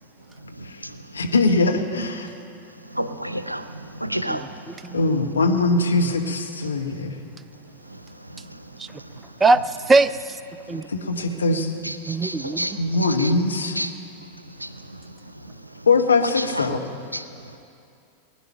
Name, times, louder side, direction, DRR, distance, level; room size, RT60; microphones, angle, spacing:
voice 1, 1.1-2.3 4.9-7.1 10.9-11.7 12.8-13.8 15.9-16.8, left 3 dB, 75° left, 1.1 m, -21 dB
voice 2, 2.9-4.4 11.9-12.7 13.2-13.3 13.8-13.9 14.6-14.7 16.4-16.6 17.1-17.2, right 1 dB, 90° right, 0.6 m, -29 dB
voice 3, 4.3-5.0 8.8-8.9 9.4-10.4 10.7-10.9 12.1-12.8, right 3 dB, 15° right, 0.3 m, -21 dB
20.0 x 10.0 x 5.7 m
figure-of-eight pair, 90°, 0 cm